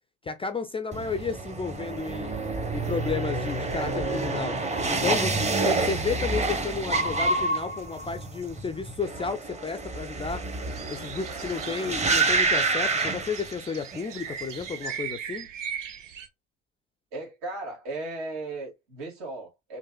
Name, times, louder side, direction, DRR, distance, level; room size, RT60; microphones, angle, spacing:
voice 1, 0.2-2.3 2.7-4.6 4.9-5.4 5.6-10.4 10.9-15.5, left 5 dB, 15° left, 0.3 m, -32 dB
sound 1, 0.9-14.0 14.3-14.9, right 3 dB, 20° right, 0.8 m, -28 dB
sound 2, 10.7-16.3, right 8 dB, 90° right, 0.6 m, -39 dB
voice 2, 17.1-19.8, right 2 dB, 75° right, 2.0 m, -36 dB
3.8 x 2.6 x 2.2 m
hypercardioid pair, 60°, 37 cm